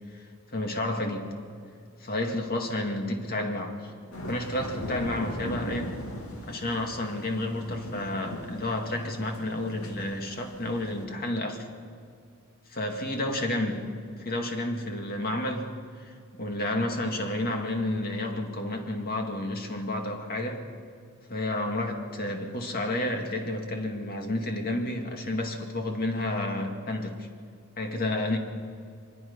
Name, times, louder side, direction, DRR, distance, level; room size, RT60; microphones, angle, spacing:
voice 1, 0.1-1.4 2.0-3.9 4.3-6.0 6.5-11.7 12.7-20.7 21.3-27.3 27.8-28.4, left 1 dB, 45° left, 3 dB, 2.2 m, -31 dB
sound 1, 4.1-11.0, equal, 75° left, 2.4 m, -39 dB
24.0 x 21.5 x 5.5 m, 2.2 s
head